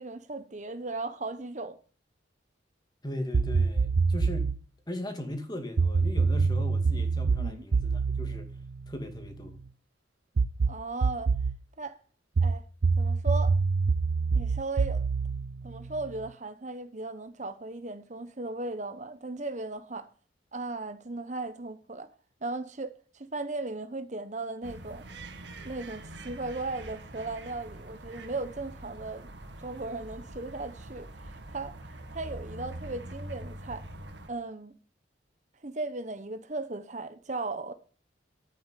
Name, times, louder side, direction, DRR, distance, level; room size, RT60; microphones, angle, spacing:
voice 1, 0.0-1.8 7.4-7.6 10.7-11.3 11.8-12.0 12.4-12.6 13.0-13.5 14.3-15.0 15.6-20.1 20.5-22.1 22.4-25.0 25.6-29.3 29.6-31.8 32.1-33.9 34.3-34.7 35.6-37.7, right 2 dB, 40° right, 1.0 m, -37 dB
voice 2, 3.0-4.5 4.9-8.5 8.9-9.6, left 1 dB, 20° left, 2.4 m, -38 dB
sound 1, 3.3-4.6 5.8-9.5 10.4-11.6 12.4-16.3, right 4 dB, 85° right, 0.5 m, -26 dB
sound 2, 24.6-34.3, right 1 dB, 70° right, 2.0 m, -44 dB
11.5 x 9.4 x 8.4 m
head